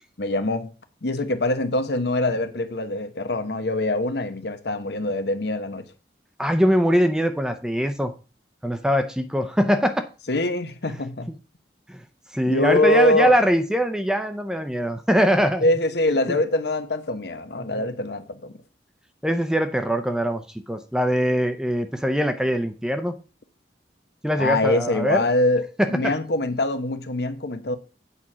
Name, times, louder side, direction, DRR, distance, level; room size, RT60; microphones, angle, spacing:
voice 1, 0.2-0.7 1.0-5.9 10.3-11.3 12.5-13.3 15.6-18.5 24.4-27.8, left 2 dB, 70° left, 1.0 m, -24 dB
voice 2, 6.4-8.1 8.6-10.0 11.9-12.0 12.3-15.6 17.6-17.8 19.2-23.1 24.2-25.2 25.8-26.1, equal, 5° right, 0.6 m, -22 dB
8.5 x 4.3 x 6.1 m
head